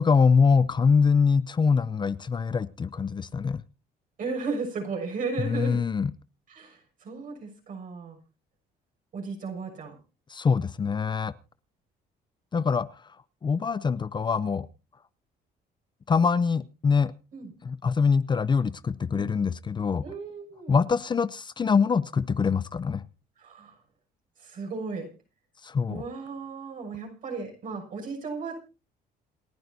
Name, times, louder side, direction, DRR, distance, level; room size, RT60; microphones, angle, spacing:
voice 1, 0.0-3.6 5.4-6.1 10.3-11.3 12.5-12.9 13.4-14.7 16.1-17.1 17.6-20.0 20.7-23.0 25.6-26.0, left 5 dB, 25° left, 16 dB, 0.6 m, -24 dB
voice 2, 4.2-5.8 6.5-8.2 9.1-9.9 17.3-17.5 19.1-19.3 20.0-20.8 23.4-23.8 24.4-25.1 25.9-28.5, right 4 dB, 50° right, 1 dB, 6.6 m, -35 dB
28.5 x 10.5 x 2.7 m, 0.31 s
cardioid pair, 110°, 17 cm